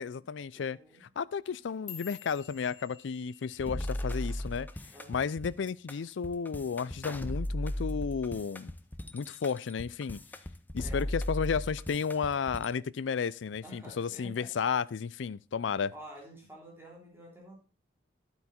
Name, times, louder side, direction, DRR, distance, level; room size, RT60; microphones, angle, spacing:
voice 1, 0.0-4.7 5.1-8.7 9.1-10.2 10.7-15.9, left 6 dB, 75° left, 0.4 m, -33 dB
voice 2, 0.5-1.0 4.9-5.2 10.8-11.1 13.6-14.6 15.9-17.5, right 1 dB, 10° right, 3.6 m, -50 dB
sound 1, 1.4-5.8 6.1-6.5 6.9-7.3 7.7-7.9 8.5-8.9 9.3-10.2 10.5-11.0 11.7-11.8, left 10 dB, 35° left, 3.6 m, -52 dB
sound 2, 3.6-12.7, left 1 dB, 10° left, 0.5 m, -37 dB
12.0 x 8.1 x 4.3 m
head